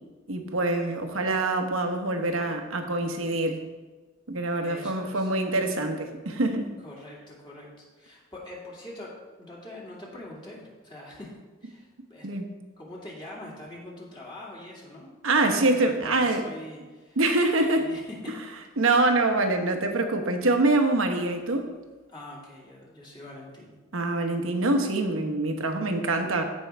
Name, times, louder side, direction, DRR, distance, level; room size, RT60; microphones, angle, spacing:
voice 1, 0.3-3.6 4.3-6.7 12.2-12.5 15.2-16.4 17.2-17.9 18.8-21.7 23.9-26.4, right 2 dB, 75° right, 5 dB, 1.1 m, -25 dB
voice 2, 4.6-5.3 6.8-12.3 12.8-15.1 15.4-17.2 17.8-18.8 22.1-23.7, left 1 dB, 25° left, -4 dB, 2.2 m, -43 dB
14.5 x 5.4 x 3.4 m, 1.3 s
head